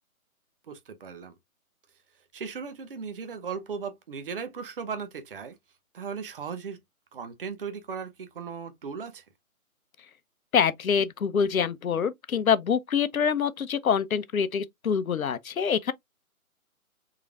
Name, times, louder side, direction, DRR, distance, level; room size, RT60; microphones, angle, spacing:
voice 1, 0.7-1.4 2.3-5.6 5.9-6.8 7.1-9.2, right 6 dB, 40° right, 0.7 m, -37 dB
voice 2, 10.5-15.9, left 7 dB, 70° left, 0.7 m, -25 dB
3.7 x 3.2 x 2.3 m
figure-of-eight pair, 150°, 43 cm